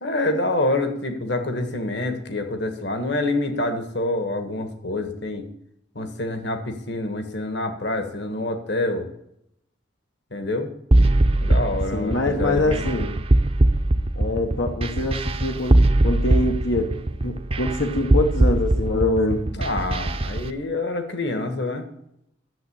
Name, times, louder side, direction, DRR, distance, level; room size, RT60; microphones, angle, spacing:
voice 1, 0.0-5.5 5.9-9.0 10.3-10.7 11.4-12.9 19.6-21.9, left 2 dB, 60° left, 7 dB, 1.6 m, -26 dB
sound 1, 10.9-20.4, right 1 dB, 30° right, 0.6 m, -20 dB
voice 2, 11.9-13.2 14.2-16.9 17.2-19.4, left 2 dB, 80° left, 3 dB, 1.2 m, -24 dB
12.0 x 7.4 x 8.6 m, 0.78 s
head